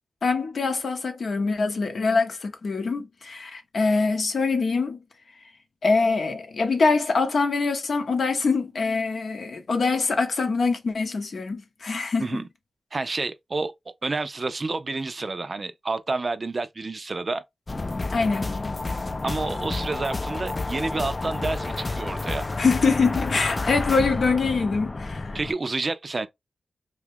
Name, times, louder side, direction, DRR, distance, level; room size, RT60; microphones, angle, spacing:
voice 1, 0.2-5.0 5.8-12.4 18.1-18.7 22.6-25.4, left 4 dB, 70° left, 0.7 m, -24 dB
voice 2, 12.9-17.4 19.2-22.5 25.3-26.3, right 3 dB, 50° right, 0.4 m, -29 dB
sound 1, 17.7-25.5, left 3 dB, 40° left, 0.4 m, -30 dB
2.8 x 2.3 x 3.3 m
cardioid pair, 55°, 0 cm